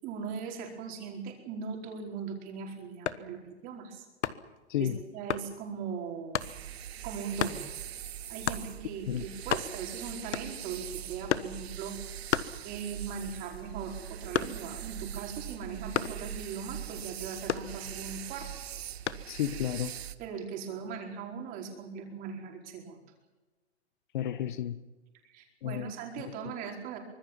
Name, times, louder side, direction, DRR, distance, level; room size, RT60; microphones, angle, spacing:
voice 1, 0.0-4.0 4.8-6.4 7.0-7.6 8.3-12.0 12.6-18.5 20.2-23.0 25.2-27.0, right 6 dB, 25° right, 2 dB, 4.6 m, -39 dB
sound 1, 2.9-3.3 4.2-4.6 5.3-5.5 6.3-6.6 7.4-7.6 8.5-8.7 9.1-9.2 9.4-9.9 10.3-10.7 11.3-11.6 12.3-13.1 13.4-14.8 15.9-16.3 17.5-18.2 19.1-19.3, left 8 dB, 90° left, 1.4 m, -32 dB
sound 2, 6.4-20.1, right 10 dB, 65° right, 1.5 m, -42 dB
voice 2, 19.3-19.9 24.1-24.8 25.6-25.9, left 11 dB, 45° left, 14 dB, 1.1 m, -32 dB
25.0 x 20.5 x 7.5 m, 1.2 s
hypercardioid pair, 160°, 34 cm